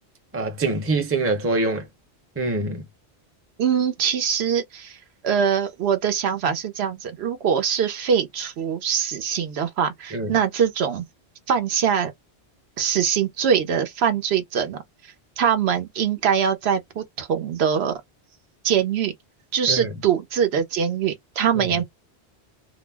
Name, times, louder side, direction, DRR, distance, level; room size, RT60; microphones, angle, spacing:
voice 1, 0.3-1.9 2.4-2.8 10.1-10.3 19.7-19.9 21.6-21.7, right 2 dB, 15° right, 0.5 m, -24 dB
voice 2, 3.6-11.0 11.5-12.1 12.8-18.0 18.6-19.1 19.5-21.8, right 7 dB, 75° right, 0.9 m, -23 dB
2.4 x 2.0 x 3.3 m
omnidirectional pair, 1.1 m